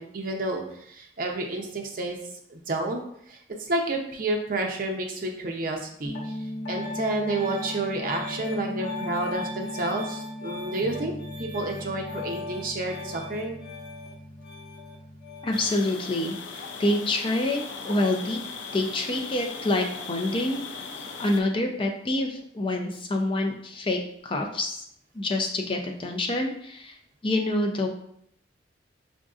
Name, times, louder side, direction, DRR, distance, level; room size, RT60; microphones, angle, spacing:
voice 1, 0.0-2.2 2.5-3.0 3.3-6.4 6.7-11.1 11.4-13.6, right 2 dB, 50° right, 1 dB, 0.6 m, -30 dB
Piano, 6.0-15.7, left 2 dB, 70° left, 1.0 m, -36 dB
voice 2, 15.4-16.4 16.8-18.4 18.7-20.6 21.2-24.8 25.1-27.0 27.2-27.9, left 2 dB, 30° left, 2 dB, 0.5 m, -27 dB
sound 1, 15.5-21.4, left 4 dB, 90° left, 0.4 m, -38 dB
5.1 x 2.6 x 2.4 m, 0.70 s
head